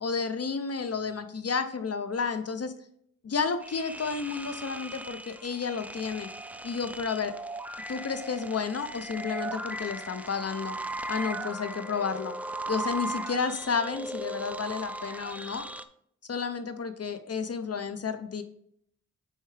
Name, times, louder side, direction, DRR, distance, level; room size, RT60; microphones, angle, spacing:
voice 1, 0.0-2.7 3.2-6.3 6.6-7.3 7.9-10.8 11.1-12.4 12.7-15.7 16.3-18.4, left 5 dB, 50° left, 9 dB, 0.6 m, -31 dB
sound 1, 3.6-15.8, right 2 dB, 5° right, 0.4 m, -38 dB
9.3 x 4.4 x 3.3 m, 0.68 s
wide cardioid pair, 85°, 32 cm